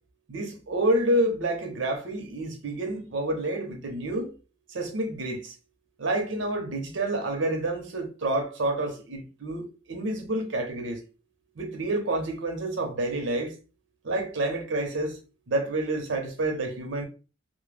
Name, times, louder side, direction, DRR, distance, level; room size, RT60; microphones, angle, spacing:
voice 1, 0.3-4.3 4.7-5.5 6.0-11.0 11.6-13.5 14.0-15.2 15.5-17.0, right 1 dB, 75° right, 0.7 m, -28 dB
2.2 x 2.0 x 3.2 m
head